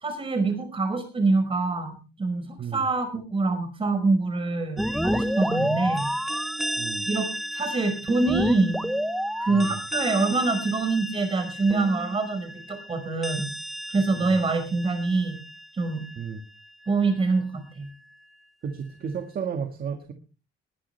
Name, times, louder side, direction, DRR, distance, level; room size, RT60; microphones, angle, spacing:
voice 1, 0.0-2.5 2.7-6.1 7.1-8.8 9.4-13.5 13.9-15.4 15.7-16.0 16.9-17.9, right 3 dB, 25° right, 8 dB, 5.1 m, -25 dB
voice 2, 2.6-2.9 5.6-5.9 6.8-7.1 9.5-9.8 14.2-14.4 16.2-16.4 18.6-20.1, right 6 dB, 50° right, 6 dB, 1.8 m, -33 dB
sound 1, 4.8-16.3, equal, ahead, 1.0 m, -30 dB
20.5 x 11.5 x 3.3 m, 0.33 s
cardioid pair, 135°, 20 cm